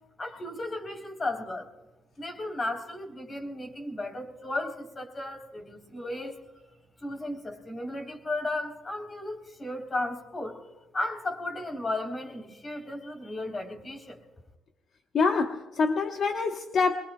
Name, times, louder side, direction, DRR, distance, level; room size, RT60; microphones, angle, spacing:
voice 1, 0.2-1.7 2.2-6.4 7.0-10.6 10.9-14.2, left 2 dB, 30° left, 4 dB, 3.7 m, -34 dB
voice 2, 15.1-17.0, left 4 dB, 60° left, 5 dB, 1.1 m, -26 dB
23.5 x 22.0 x 2.3 m, 1.0 s
cardioid pair, 90°, 0 cm